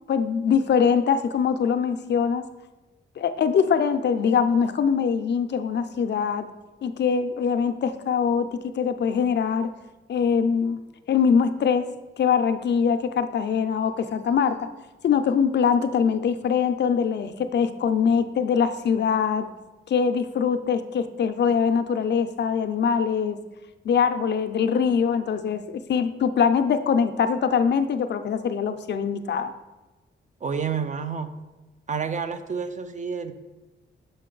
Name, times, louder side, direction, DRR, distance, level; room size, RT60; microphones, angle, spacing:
voice 1, 0.1-2.4 3.2-6.5 6.8-9.7 10.1-10.8 11.1-11.9 12.2-14.7 15.0-19.5 19.9-23.4 23.8-29.5, left 6 dB, 60° left, 9 dB, 0.4 m, -23 dB
voice 2, 30.4-31.3 31.9-33.3, right 6 dB, 40° right, 9 dB, 0.4 m, -29 dB
6.5 x 5.1 x 3.8 m, 1.1 s
wide cardioid pair, 150°, 20 cm